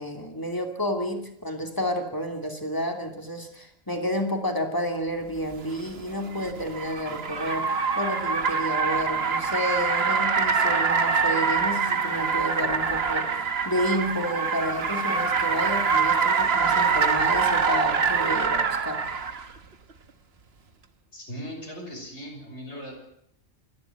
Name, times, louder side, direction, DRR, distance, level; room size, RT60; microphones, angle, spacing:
voice 1, 0.0-19.0, equal, 20° left, 4 dB, 2.8 m, -30 dB
Car, 5.5-19.5, right 5 dB, 65° right, 1.5 m, -25 dB
voice 2, 21.1-22.9, equal, 75° left, 1 dB, 6.4 m, -38 dB
27.5 x 11.0 x 8.9 m, 0.71 s
omnidirectional pair, 1.2 m